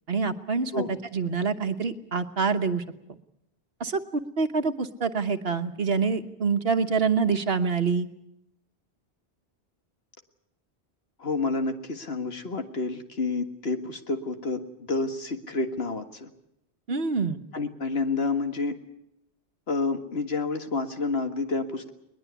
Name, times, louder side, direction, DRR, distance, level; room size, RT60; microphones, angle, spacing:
voice 1, 0.1-2.8 3.8-4.0 4.4-8.1 16.9-17.4, right 5 dB, 65° right, 9 dB, 1.4 m, -26 dB
voice 2, 11.2-14.6 14.9-16.3 17.5-18.8 19.7-21.9, left 3 dB, 70° left, 7 dB, 2.0 m, -29 dB
21.5 x 20.5 x 8.3 m, 0.81 s
omnidirectional pair, 1.1 m